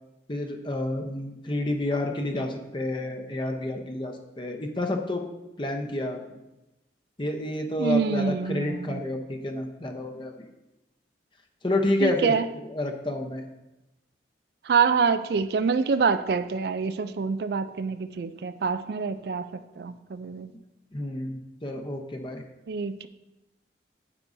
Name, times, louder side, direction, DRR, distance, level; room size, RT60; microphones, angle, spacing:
voice 1, 0.3-5.2 5.6-6.4 7.2-10.3 11.6-12.3 12.6-13.4 20.9-22.4, left 1 dB, 25° left, 0.8 m, -29 dB
voice 2, 7.8-9.0 12.0-12.5 14.7-19.4 19.8-20.5 22.7-23.1, right 5 dB, 55° right, 0.3 m, -26 dB
9.8 x 8.4 x 2.7 m
head